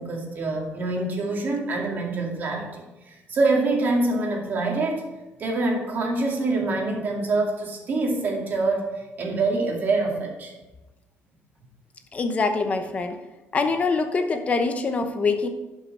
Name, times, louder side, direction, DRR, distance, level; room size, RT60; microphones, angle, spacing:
voice 1, 0.0-5.0 5.4-10.5, right 2 dB, 40° right, 0 dB, 2.1 m, -25 dB
voice 2, 12.1-13.2 13.5-15.5, left 4 dB, 30° left, 7 dB, 0.9 m, -24 dB
11.5 x 5.8 x 4.3 m, 1.1 s
cardioid pair, 150°, 5 cm